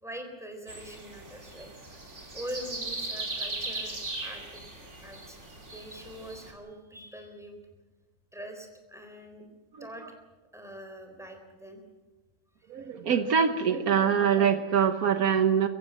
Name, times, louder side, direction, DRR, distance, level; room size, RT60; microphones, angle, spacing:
voice 1, 0.0-2.1 2.3-4.6 5.0-7.6 8.3-9.5 9.8-10.0 10.5-11.8 12.8-12.9, equal, ahead, 4 dB, 3.8 m, -43 dB
sound 1, 0.7-6.5, right 2 dB, 50° right, 3.2 m, -38 dB
voice 2, 12.7-15.7, right 7 dB, 70° right, 8 dB, 1.5 m, -24 dB
24.0 x 14.5 x 7.8 m, 1.2 s
omnidirectional pair, 1.6 m